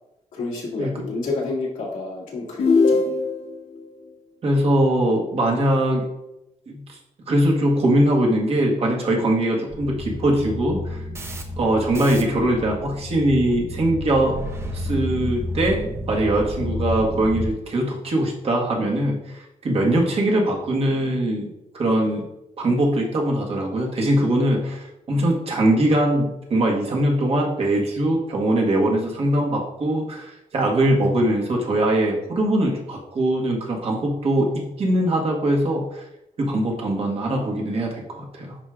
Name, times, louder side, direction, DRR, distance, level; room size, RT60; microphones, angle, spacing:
voice 1, 0.3-3.2, left 3 dB, 85° left, -5 dB, 2.2 m, -29 dB
sound 1, 2.6-3.6, left 4 dB, 55° left, 0.8 m, -19 dB
voice 2, 4.4-6.1 6.7-7.0 7.3-11.0 11.6-14.3 14.7-21.5 21.7-22.2 22.6-36.0 36.4-38.6, right 1 dB, 50° right, -1 dB, 1.5 m, -21 dB
sound 2, 9.7-17.5, left 1 dB, 20° right, 0.6 m, -31 dB
10.5 x 4.7 x 2.4 m, 0.87 s
wide cardioid pair, 170°, 13 cm